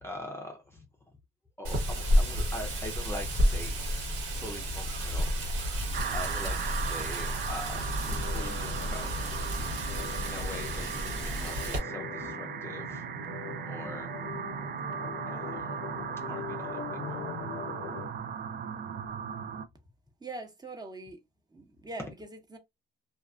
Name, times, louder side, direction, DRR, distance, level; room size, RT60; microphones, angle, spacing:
voice 1, 0.0-0.8 1.6-3.7 4.4-5.6 6.1-9.4 10.2-13.0 13.7-14.1 15.3-15.7 16.2-17.2, left 1 dB, 15° left, 0.5 m, -43 dB
Wind, 1.6-11.8, equal, 90° right, 1.2 m, -31 dB
sound 1, 5.9-19.7, right 7 dB, 55° right, 0.4 m, -37 dB
sound 2, 7.7-18.1, left 10 dB, 90° left, 0.5 m, -43 dB
voice 2, 20.2-21.2 21.5-22.6, right 2 dB, 20° right, 0.8 m, -42 dB
2.4 x 2.3 x 2.3 m
cardioid pair, 90°, 20 cm